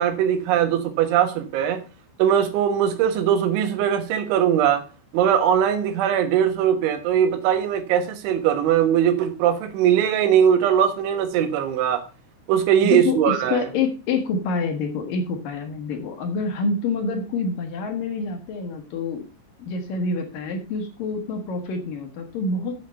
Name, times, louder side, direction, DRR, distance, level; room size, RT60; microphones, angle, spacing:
voice 1, 0.0-1.8 2.2-4.8 5.1-12.0 12.5-13.7, right 9 dB, 75° right, 8 dB, 3.7 m, -20 dB
voice 2, 12.8-19.2 19.6-22.7, left 4 dB, 65° left, 4 dB, 2.3 m, -27 dB
8.6 x 7.6 x 5.6 m, 0.33 s
omnidirectional pair, 5.6 m